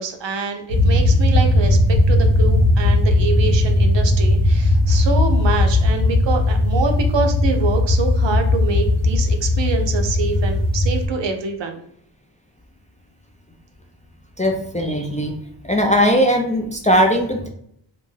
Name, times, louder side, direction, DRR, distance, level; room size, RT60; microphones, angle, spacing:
voice 1, 0.0-11.8, right 5 dB, 60° right, 5 dB, 0.6 m, -25 dB
sound 1, 0.7-11.1, left 2 dB, 75° left, 1.0 m, -17 dB
voice 2, 14.4-15.3 15.7-17.5, equal, 15° left, 1 dB, 0.3 m, -18 dB
2.4 x 2.2 x 3.1 m, 0.70 s
cardioid pair, 45°, 50 cm